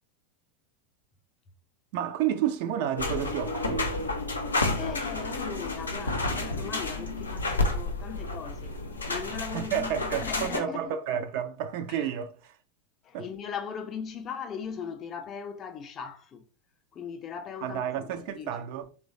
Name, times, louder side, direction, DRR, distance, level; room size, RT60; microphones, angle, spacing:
voice 1, 1.9-3.9 9.5-12.5 13.1-13.3 17.6-18.8, right 9 dB, 55° right, 0.3 m, -31 dB
sound 1, 3.0-10.6, left 2 dB, 85° left, 0.5 m, -30 dB
voice 2, 4.8-8.8 9.1-11.0 12.0-12.1 13.0-16.4 16.9-18.5, left 7 dB, 35° left, 0.5 m, -39 dB
3.0 x 2.1 x 2.6 m
figure-of-eight pair, 85°, 0 cm